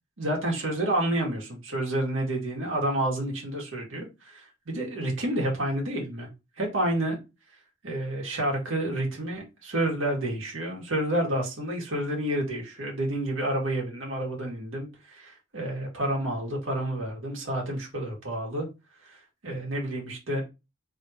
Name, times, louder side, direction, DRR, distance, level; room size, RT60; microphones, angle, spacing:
voice 1, 0.2-6.3 6.6-7.2 7.8-18.7 19.0-20.4, right 1 dB, 70° right, -1 dB, 1.6 m, -29 dB
3.3 x 2.6 x 4.2 m, 0.26 s
head